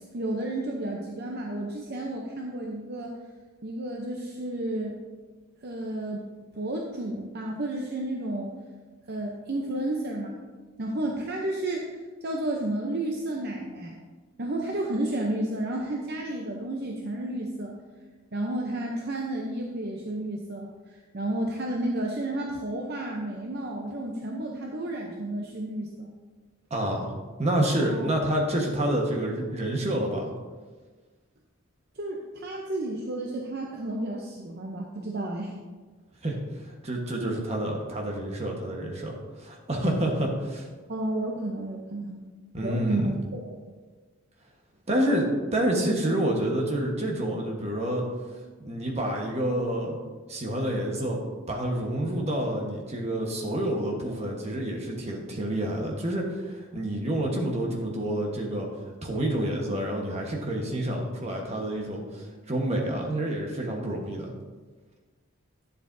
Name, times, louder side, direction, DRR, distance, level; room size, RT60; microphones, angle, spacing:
voice 1, 0.1-3.1 3.6-5.0 5.6-6.3 6.6-8.5 9.1-10.3 10.8-14.0 14.4-17.7 18.3-26.1 27.9-28.1 32.0-35.5 40.9-42.2 42.6-43.6, right 1 dB, 50° right, 0 dB, 0.7 m, -32 dB
voice 2, 26.7-27.1 27.4-30.3 36.2-36.4 36.6-40.6 42.5-43.1 44.9-48.0 48.6-50.0 50.3-51.2 51.5-58.7 59.0-64.3, right 1 dB, 30° right, 0 dB, 1.2 m, -28 dB
10.5 x 7.4 x 2.7 m, 1.4 s
head